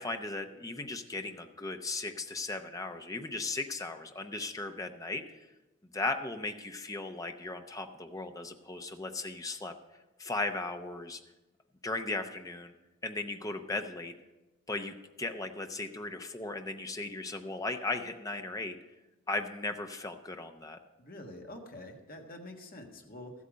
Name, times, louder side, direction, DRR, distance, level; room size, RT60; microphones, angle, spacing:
voice 1, 0.0-5.2 5.9-9.7 10.2-11.2 11.8-12.7 13.0-14.1 14.7-18.8 19.3-20.8, left 2 dB, 15° left, 6 dB, 0.7 m, -37 dB
voice 2, 21.0-23.3, left 1 dB, 45° left, 2 dB, 1.5 m, -46 dB
13.5 x 8.4 x 5.2 m, 1.1 s
head